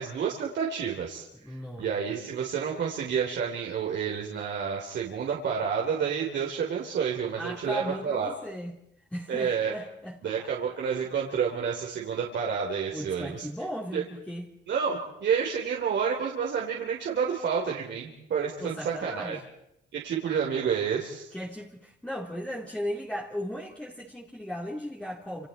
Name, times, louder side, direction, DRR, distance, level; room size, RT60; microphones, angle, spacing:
voice 1, 0.0-8.3 9.3-9.8 10.2-13.5 13.9-14.0 14.7-19.4 19.9-21.3, right 7 dB, 65° right, 3.9 m, -29 dB
voice 2, 1.4-1.9 7.4-8.8 9.1-10.5 12.9-14.4 18.6-19.4 21.3-25.5, equal, 5° left, 3.7 m, -36 dB
29.5 x 28.5 x 4.4 m
cardioid pair, 90°, 20 cm